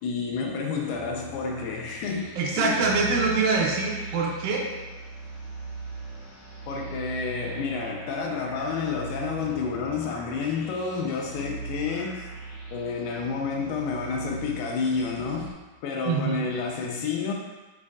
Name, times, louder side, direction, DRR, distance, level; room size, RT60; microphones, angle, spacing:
voice 1, 0.0-2.8 6.7-12.3 12.7-15.5 15.8-17.3, left 5 dB, 80° left, 1 dB, 2.6 m, -30 dB
sound 1, 0.9-15.5, right 3 dB, 60° left, 1.4 m, -40 dB
voice 2, 2.4-4.6 16.1-16.4, right 4 dB, 80° right, -2 dB, 2.2 m, -24 dB
7.8 x 5.3 x 2.4 m, 1.2 s
omnidirectional pair, 4.6 m